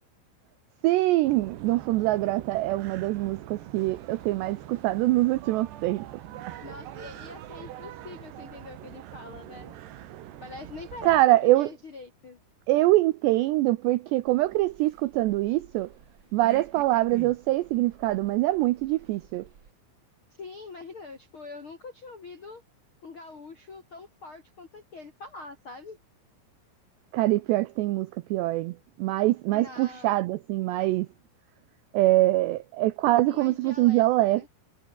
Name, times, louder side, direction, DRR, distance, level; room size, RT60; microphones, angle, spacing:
voice 1, 0.8-6.1 11.0-11.7 12.7-15.9 16.3-19.5 27.1-31.1 31.9-34.5, right 17 dB, 90° right, 2.4 m, -24 dB
sound 1, 1.2-11.2, right 12 dB, 65° right, 3.3 m, -43 dB
voice 2, 6.6-9.7 10.4-12.4 20.4-22.6 23.0-26.0 29.5-30.2 33.2-34.5, left 3 dB, 60° left, 1.4 m, -44 dB
sound 2, 14.2-19.7, right 6 dB, 45° right, 1.6 m, -50 dB
omnidirectional pair, 6.0 m